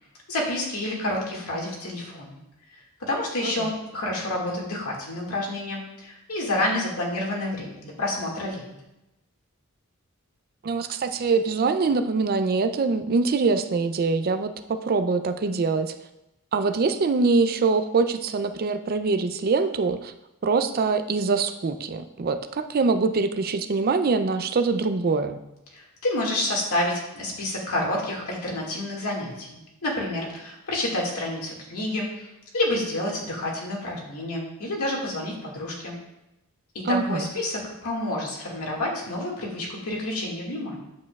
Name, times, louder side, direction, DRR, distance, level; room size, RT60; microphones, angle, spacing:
voice 1, 0.3-2.4 3.1-8.7 25.7-32.3 32.5-35.9 36.9-40.8, left 1 dB, 85° left, -2 dB, 2.0 m, -29 dB
voice 2, 10.6-15.9 16.5-20.1 20.4-25.4 36.8-37.3, right 4 dB, 45° right, 8 dB, 0.4 m, -24 dB
8.4 x 7.4 x 2.3 m, 0.92 s
head